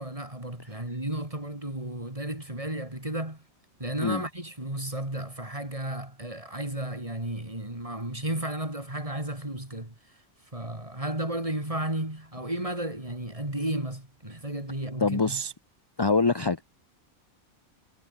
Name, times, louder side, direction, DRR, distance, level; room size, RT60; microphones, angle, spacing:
voice 1, 0.0-3.4 3.8-9.9 10.5-15.4, right 1 dB, 30° right, 4.5 m, -33 dB
voice 2, 15.0-15.5 16.0-16.6, left 3 dB, 25° left, 0.8 m, -25 dB
omnidirectional pair, 1.2 m